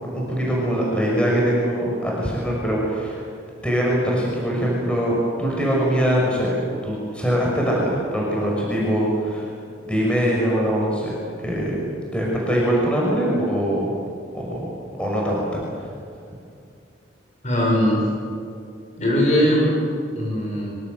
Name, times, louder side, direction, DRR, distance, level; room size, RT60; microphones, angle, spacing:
voice 1, 0.0-3.2 3.6-9.5 9.8-11.2 11.4-11.8 12.1-13.9 14.3-14.7 15.0-15.9, equal, 5° left, -4 dB, 6.1 m, -22 dB
voice 2, 17.4-18.1 19.0-19.8 20.2-20.7, equal, 40° left, -2 dB, 7.8 m, -20 dB
25.0 x 24.5 x 7.9 m, 2.4 s
head